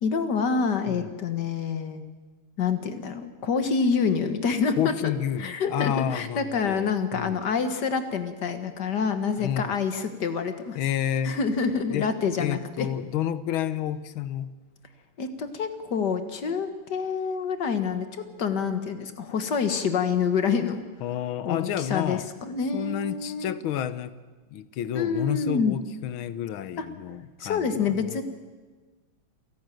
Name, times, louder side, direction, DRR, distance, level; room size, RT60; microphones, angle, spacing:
voice 1, 0.0-2.0 2.6-5.1 5.4-10.8 11.2-12.9 15.2-20.8 21.4-23.5 24.9-25.8 26.8-26.9 27.4-28.2, left 5 dB, 60° left, 9 dB, 1.9 m, -27 dB
voice 2, 4.8-7.4 9.4-9.7 10.7-11.4 11.9-12.1 12.4-14.5 21.0-22.3 22.7-24.1 24.5-28.0, left 10 dB, 90° left, 15 dB, 1.7 m, -30 dB
28.5 x 11.5 x 9.2 m, 1.4 s
omnidirectional pair, 2.2 m